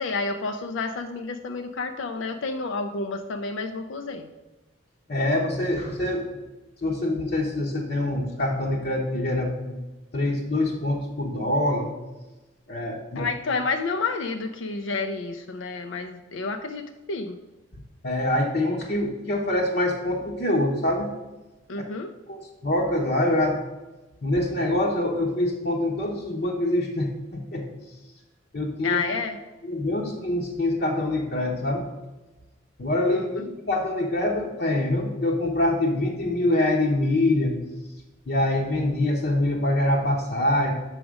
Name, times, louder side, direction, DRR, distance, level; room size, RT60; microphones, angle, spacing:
voice 1, 0.0-4.3 13.2-17.4 21.7-22.1 28.8-29.4 33.1-33.2, left 4 dB, 75° left, 7 dB, 0.4 m, -30 dB
voice 2, 5.1-6.3 6.8-9.7 10.1-11.9 12.7-13.3 18.0-21.1 21.8-21.9 22.3-23.6 24.2-27.7 28.5-29.0 29.6-31.9 32.8-37.5 38.3-40.7, left 1 dB, 55° left, -2 dB, 0.9 m, -25 dB
6.1 x 4.9 x 6.1 m, 1.1 s
head